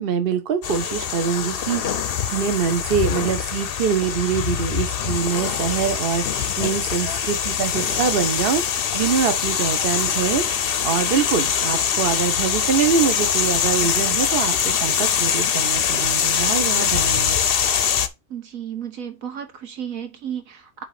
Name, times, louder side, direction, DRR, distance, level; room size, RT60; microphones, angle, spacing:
voice 1, 0.0-10.5 10.8-17.4, right 7 dB, 45° right, 1.0 m, -24 dB
sound 1, 0.6-18.1, left 8 dB, 50° left, 0.7 m, -23 dB
voice 2, 18.3-20.8, right 9 dB, 70° right, 1.6 m, -33 dB
8.1 x 2.9 x 5.8 m
omnidirectional pair, 1.5 m